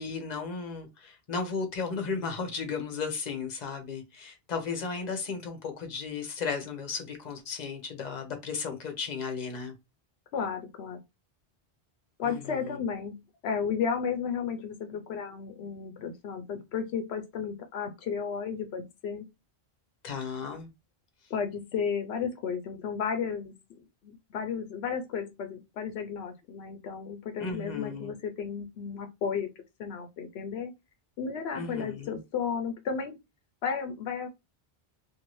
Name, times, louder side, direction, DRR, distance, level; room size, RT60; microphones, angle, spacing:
voice 1, 0.0-9.7 12.2-12.8 20.0-20.7 27.4-28.1 31.5-32.2, left 5 dB, 45° left, 0.9 m, -35 dB
voice 2, 10.3-11.0 12.2-19.3 21.3-23.5 24.0-29.5 29.8-30.7 31.2-33.2 33.6-34.3, left 6 dB, 80° left, 0.8 m, -33 dB
2.6 x 2.6 x 3.1 m
omnidirectional pair, 1.1 m